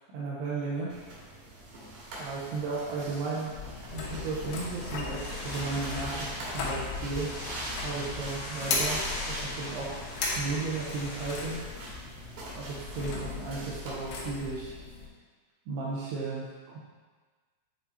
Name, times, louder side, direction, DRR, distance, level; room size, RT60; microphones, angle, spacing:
voice 1, 0.1-0.9 2.1-3.5 3.9-7.3 7.8-9.0 9.3-10.0 10.4-11.9 12.5-14.7 15.7-16.5, right 4 dB, 80° right, -7 dB, 2.7 m, -34 dB
sound 1, 0.9-14.4, right 1 dB, 60° right, 2.4 m, -43 dB
sound 2, 3.5-15.1, left 3 dB, 75° left, 2.7 m, -37 dB
sound 3, 4.5-11.5, left 1 dB, 60° left, 1.9 m, -41 dB
8.4 x 4.1 x 2.7 m, 1.4 s
omnidirectional pair, 4.9 m